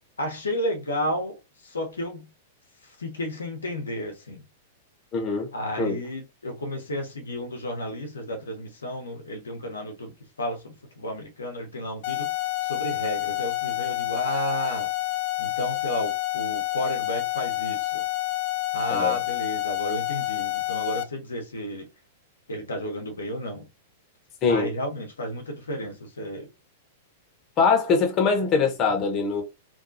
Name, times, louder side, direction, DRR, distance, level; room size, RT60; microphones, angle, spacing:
voice 1, 0.2-2.3 2.8-4.4 5.5-12.3 12.6-14.9 15.4-18.0 18.7-21.9 22.5-23.7 24.5-26.5, equal, 85° left, 0.9 m, -32 dB
voice 2, 5.1-5.5 5.8-6.0 18.9-19.1 24.4-24.7 27.6-29.4, left 5 dB, 35° left, 1.1 m, -22 dB
sound 1, 12.0-21.0, left 18 dB, 55° left, 0.4 m, -28 dB
2.7 x 2.2 x 2.7 m
hypercardioid pair, 105°, 0 cm